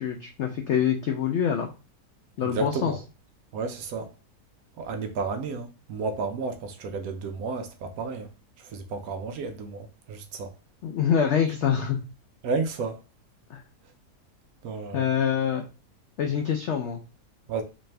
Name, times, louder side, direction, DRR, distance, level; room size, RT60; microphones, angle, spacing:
voice 1, 0.0-1.7 2.4-2.9 10.8-12.0 13.5-13.6 14.9-15.6 16.2-17.0, left 8 dB, 85° left, 0.6 m, -25 dB
voice 2, 2.4-3.0 3.5-4.1 4.8-8.3 8.7-10.5 11.6-11.8 12.4-13.0 14.6-15.1 17.5-17.6, right 4 dB, 70° right, 1.0 m, -32 dB
4.1 x 2.6 x 3.2 m
omnidirectional pair, 1.8 m